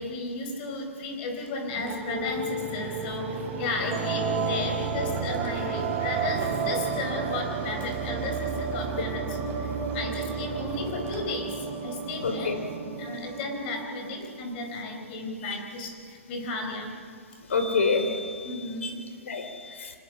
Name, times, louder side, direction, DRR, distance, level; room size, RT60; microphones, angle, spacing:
voice 1, 0.0-12.6 13.0-16.9 18.4-19.3, left 3 dB, 45° left, 3 dB, 4.6 m, -34 dB
sound 1, 1.7-14.6, right 5 dB, 35° right, 3.6 m, -32 dB
voice 2, 12.2-12.6 15.5-15.6 17.5-18.5 18.8-18.9 19.3-19.9, left 4 dB, 75° left, 6 dB, 3.3 m, -27 dB
25.5 x 19.5 x 5.7 m, 2.4 s
hypercardioid pair, 125°, 7 cm